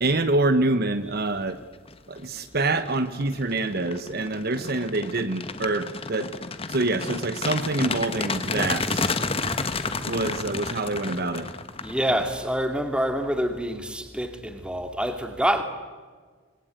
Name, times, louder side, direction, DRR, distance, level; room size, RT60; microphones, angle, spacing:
voice 1, 0.0-1.6 2.1-6.3 6.7-9.2 10.0-11.5, right 2 dB, 50° right, 1.1 m, -26 dB
sound 1, 1.6-1.9 2.4-12.5, left 3 dB, 25° left, 1.4 m, -31 dB
voice 2, 11.8-15.6, equal, 5° right, 2.4 m, -26 dB
26.5 x 22.0 x 9.2 m
head